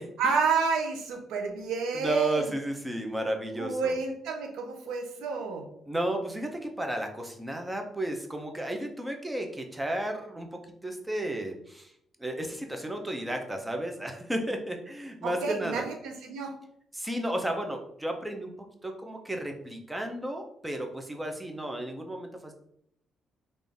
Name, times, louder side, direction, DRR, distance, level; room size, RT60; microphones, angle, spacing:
voice 1, 0.2-2.5 3.6-5.6 15.2-16.5, right 5 dB, 90° right, 3 dB, 0.8 m, -29 dB
voice 2, 1.9-4.0 5.9-11.9 12.2-15.9 16.9-18.5 18.8-22.5, right 1 dB, 10° right, 4 dB, 0.7 m, -33 dB
3.7 x 2.6 x 3.4 m, 0.71 s
cardioid pair, 90°, 0 cm